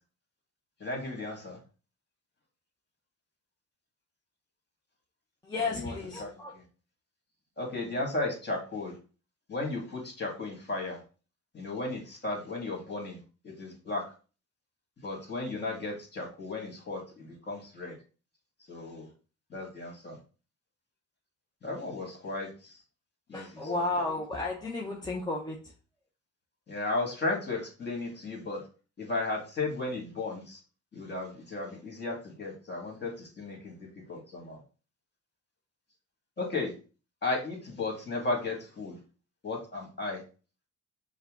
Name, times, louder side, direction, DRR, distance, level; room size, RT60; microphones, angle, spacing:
voice 1, 0.8-1.6 5.6-5.9 6.2-6.3 7.6-8.9 9.5-11.0 11.5-13.2 13.4-14.0 15.0-17.9 18.7-19.1 19.5-20.2 21.6-22.8 23.3-23.5 23.7-23.8 26.7-28.6 29.0-30.6 30.9-34.6 36.4-36.7 37.2-39.0 39.4-40.2, left 2 dB, 35° left, 1 dB, 2.1 m, -35 dB
voice 2, 5.4-6.5 23.3-25.7, left 3 dB, 15° left, -2 dB, 0.8 m, -33 dB
5.5 x 2.3 x 3.8 m, 0.35 s
cardioid pair, 90°, 30 cm